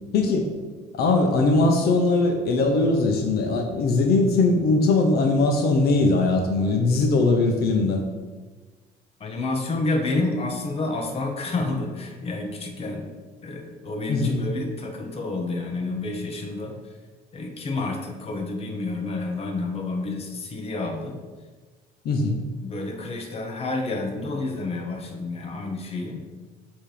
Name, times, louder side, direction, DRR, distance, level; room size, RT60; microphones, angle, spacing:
voice 1, 0.1-0.5 0.9-8.0 14.1-14.5 22.0-22.4, left 3 dB, 70° left, 3 dB, 0.8 m, -20 dB
voice 2, 9.2-13.1 13.4-16.7 17.3-21.2 22.6-26.2, left 2 dB, 35° left, 3 dB, 1.0 m, -29 dB
7.1 x 3.0 x 5.0 m, 1.3 s
cardioid pair, 110°, 17 cm